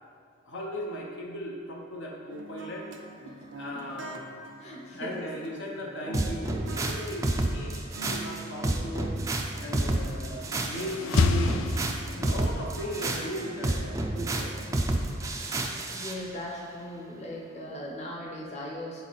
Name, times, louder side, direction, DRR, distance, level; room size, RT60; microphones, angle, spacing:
voice 1, 0.5-2.9 3.6-4.2 4.9-9.2 9.6-11.7 12.1-14.6, equal, 70° left, -1 dB, 0.8 m, -37 dB
sound 1, 2.3-15.3, right 2 dB, 70° right, 0.6 m, -45 dB
voice 2, 4.6-5.3 15.9-19.0, left 1 dB, 35° left, -3 dB, 0.9 m, -39 dB
sound 2, 6.1-16.2, right 2 dB, 15° right, 0.3 m, -30 dB
sound 3, 10.2-12.6, left 4 dB, 90° left, 0.3 m, -29 dB
8.1 x 4.2 x 4.0 m, 2.1 s
head